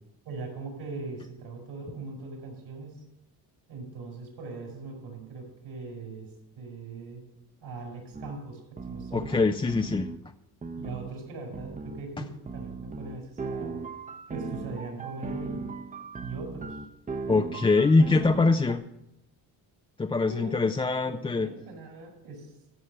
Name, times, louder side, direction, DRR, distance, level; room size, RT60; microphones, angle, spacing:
voice 1, 0.3-3.0 3.7-7.2 7.6-9.5 10.8-13.8 14.3-15.7 16.2-16.8 20.2-20.7 21.0-22.5, right 3 dB, 75° right, 2 dB, 5.3 m, -40 dB
sound 1, 8.1-8.3 8.8-10.2 10.6-11.1 11.5-12.0 12.5-18.7, right 4 dB, 20° right, 0.8 m, -37 dB
voice 2, 9.1-10.1 17.3-18.8 20.0-21.5, left 3 dB, 15° left, 7 dB, 0.4 m, -23 dB
14.0 x 7.2 x 6.6 m, 0.85 s
cardioid pair, 120°, 41 cm